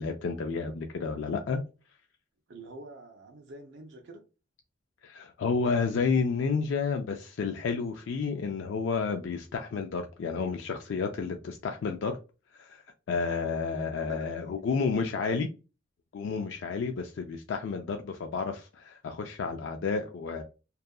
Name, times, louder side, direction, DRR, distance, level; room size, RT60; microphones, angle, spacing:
voice 1, 0.0-1.6 5.0-12.1 12.6-12.8 13.1-15.5 16.1-20.4, left 5 dB, 75° left, 0.4 m, -31 dB
voice 2, 2.5-4.2 14.1-14.6, right 2 dB, 65° right, 0.5 m, -47 dB
2.7 x 2.3 x 2.3 m
head